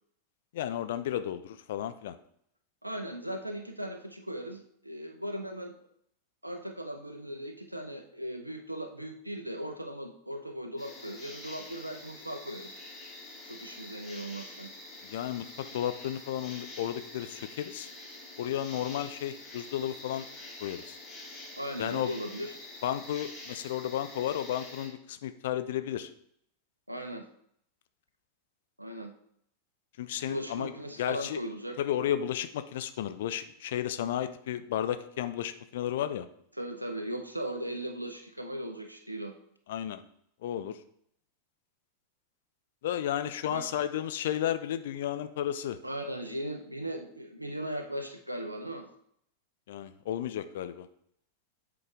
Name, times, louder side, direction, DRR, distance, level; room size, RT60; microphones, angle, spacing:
voice 1, 0.5-2.2 15.0-15.5 15.7-17.9 18.4-20.3 20.6-21.0 21.8-22.1 22.8-26.1 30.0-30.7 31.0-31.4 31.8-36.3 39.7-40.0 40.4-40.8 42.8-45.8 49.7-50.9, left 11 dB, 55° left, 11 dB, 0.4 m, -33 dB
voice 2, 2.8-5.8 6.4-12.8 13.4-14.7 21.6-22.5 26.9-27.3 28.8-29.1 30.3-31.8 36.5-39.3 43.4-43.7 45.8-48.9, right 1 dB, 85° right, 5 dB, 0.6 m, -38 dB
sound 1, 10.8-24.9, left 2 dB, 25° left, 2.1 m, -46 dB
7.8 x 3.9 x 3.5 m, 0.68 s
figure-of-eight pair, 90°, 0 cm